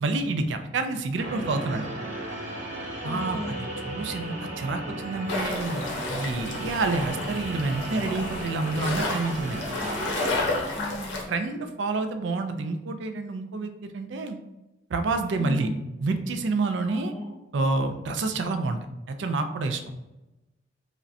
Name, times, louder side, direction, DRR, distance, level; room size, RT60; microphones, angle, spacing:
voice 1, 0.0-1.9 3.0-9.6 10.2-10.3 11.3-14.4 14.9-15.7 16.0-17.1 17.5-18.8 19.1-19.8, right 3 dB, 75° right, 7 dB, 0.4 m, -28 dB
sound 1, 1.2-10.6, right 1 dB, 40° right, 1.4 m, -35 dB
voice 2, 3.0-3.6 9.8-10.2 10.8-11.3 15.3-15.7 16.9-17.2, left 1 dB, 20° left, -1 dB, 0.7 m, -36 dB
sound 2, 5.3-11.2, left 2 dB, 80° left, 0.7 m, -31 dB
4.9 x 2.1 x 2.6 m, 0.98 s
head